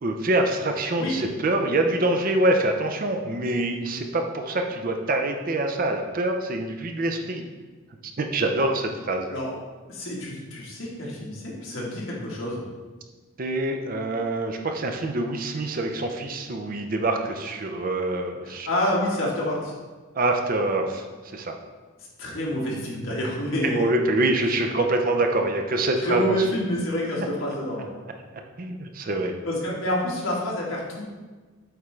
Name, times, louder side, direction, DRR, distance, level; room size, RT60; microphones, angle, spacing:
voice 1, 0.0-7.4 8.0-9.3 13.4-18.7 20.1-21.6 23.6-26.4 28.6-29.4, right 2 dB, 45° right, 4 dB, 0.5 m, -25 dB
voice 2, 9.3-9.6 9.9-12.6 18.6-19.7 22.2-23.8 26.0-27.9 29.4-31.0, equal, 75° left, -4 dB, 1.5 m, -27 dB
8.0 x 3.6 x 3.2 m, 1.3 s
head